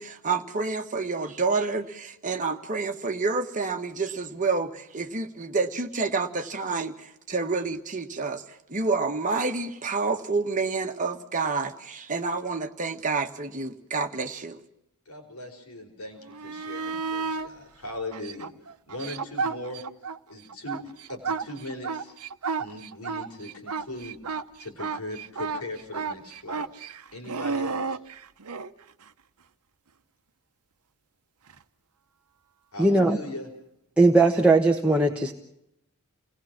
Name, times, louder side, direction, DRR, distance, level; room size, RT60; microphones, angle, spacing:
voice 1, 0.0-8.4 8.7-14.6, right 4 dB, 35° right, 4 dB, 1.7 m, -28 dB
voice 2, 15.1-18.5 18.9-19.8 20.3-22.1 22.6-24.2 24.6-26.6 27.1-28.0 32.7-33.5, left 1 dB, 90° left, 3 dB, 4.7 m, -39 dB
sound 1, 16.3-17.5 18.1-20.2 20.5-28.7 31.5-31.6, right 5 dB, 90° right, 0.9 m, -32 dB
voice 3, 32.8-33.2 34.0-35.3, right 2 dB, 5° right, 1 dB, 1.3 m, -19 dB
29.5 x 19.0 x 6.0 m, 0.81 s
head